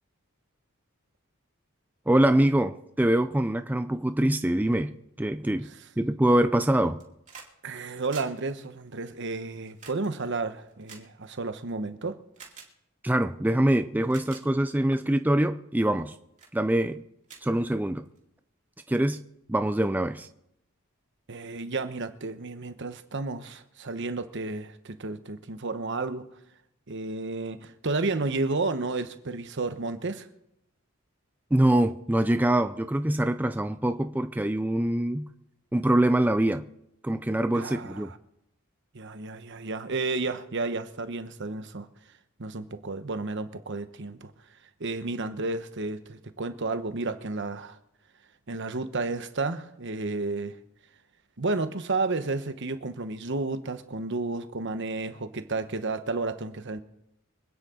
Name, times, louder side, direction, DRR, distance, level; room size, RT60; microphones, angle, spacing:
voice 1, 2.1-7.0 13.0-16.2 16.5-17.0 17.4-18.1 18.9-19.2 19.5-20.3 31.5-35.3 35.7-36.7 37.0-38.1, right 1 dB, 10° right, 0.4 m, -24 dB
sound 1, 6.8-7.5 7.8-11.7 12.3-12.7 13.5-13.6 14.0-14.4 15.0-15.3 15.8-16.1 16.4-16.5 16.9-17.0 17.2-18.2 19.3-19.4, right 5 dB, 35° right, 2.7 m, -49 dB
voice 2, 7.6-12.2 21.3-26.3 26.9-30.3 37.5-38.1 38.9-41.9 42.4-44.3 44.8-47.8 48.5-50.6 51.4-56.8, right 3 dB, 55° right, 1.1 m, -32 dB
25.5 x 9.6 x 3.8 m
head